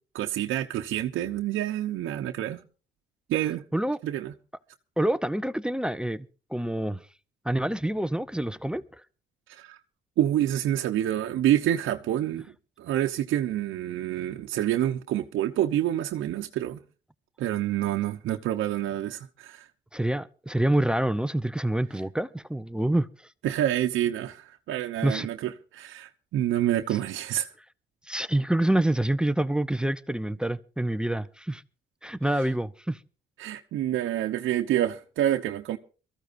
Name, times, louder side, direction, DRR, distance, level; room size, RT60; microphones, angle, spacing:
voice 1, 0.1-2.6 3.3-3.6 4.0-4.3 9.5-9.8 10.2-12.4 12.8-16.8 17.4-19.7 23.4-27.5 32.3-32.5 33.4-35.8, right 12 dB, 80° right, 1.0 m, -27 dB
voice 2, 5.0-6.2 6.5-7.0 7.5-8.8 19.9-23.1 25.0-25.3 28.1-31.6 32.0-33.0, right 1 dB, 5° right, 0.7 m, -26 dB
23.0 x 14.5 x 2.6 m
cardioid pair, 90°, 20 cm